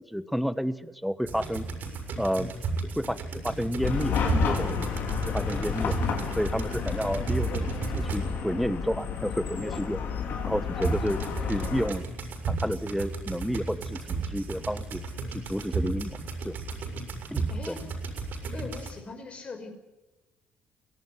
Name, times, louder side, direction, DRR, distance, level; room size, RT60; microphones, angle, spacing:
voice 1, 0.0-1.7 2.2-2.5 3.0-4.9 5.3-5.9 6.4-10.0 10.4-11.2 11.5-12.1 12.5-15.0 15.3-16.2 16.4-16.5 17.3-17.8, equal, ahead, 13 dB, 1.3 m, -30 dB
sound 1, 1.2-8.5 10.8-18.9, right 4 dB, 60° right, 6.4 m, -34 dB
Chatter / Car passing by / Traffic noise roadway noise, 3.8-11.9, left 6 dB, 65° left, 5.1 m, -31 dB
voice 2, 17.5-17.8 18.5-19.7, left 4 dB, 35° left, 6 dB, 5.5 m, -41 dB
23.0 x 17.5 x 9.6 m, 1.1 s
cardioid pair, 120°, 4 cm